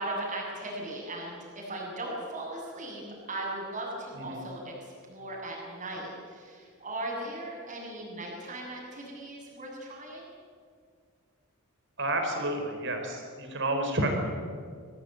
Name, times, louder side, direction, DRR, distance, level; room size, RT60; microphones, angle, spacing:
voice 1, 0.0-3.0 3.3-4.7 5.1-10.3, right 1 dB, 35° right, -2 dB, 7.3 m, -37 dB
voice 2, 12.0-14.1, right 1 dB, 55° right, 4 dB, 4.9 m, -30 dB
24.5 x 17.5 x 9.3 m, 2.1 s
head